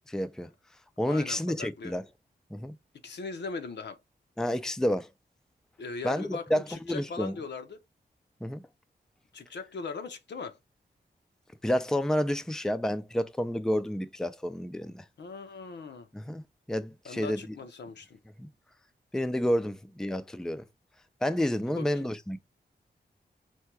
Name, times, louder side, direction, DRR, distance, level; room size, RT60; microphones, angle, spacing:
voice 1, 0.1-0.5 1.0-2.0 2.5-2.7 4.4-5.1 6.0-7.4 8.4-8.6 11.6-15.0 16.1-16.4 16.7-17.5 18.4-18.5 19.1-20.6 21.2-22.4, equal, 5° left, 0.4 m, -30 dB
voice 2, 1.1-1.9 3.0-4.0 5.8-7.8 9.3-10.6 15.2-16.1 17.0-18.2 21.7-22.1, left 4 dB, 90° left, 0.8 m, -39 dB
4.5 x 2.3 x 4.6 m
wide cardioid pair, 110°, 17 cm